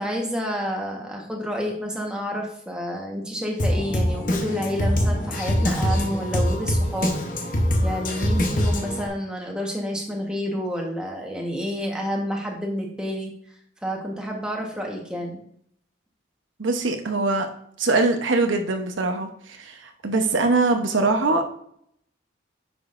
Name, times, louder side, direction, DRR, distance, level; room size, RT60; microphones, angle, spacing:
voice 1, 0.0-7.2 7.8-13.3 13.8-15.4, equal, 5° right, -1 dB, 1.2 m, -29 dB
Drum kit, 3.6-9.1, equal, 45° left, 1.0 m, -23 dB
voice 2, 16.6-17.5 17.8-21.5, right 3 dB, 90° right, 4 dB, 0.9 m, -22 dB
9.3 x 6.1 x 2.6 m, 0.68 s
head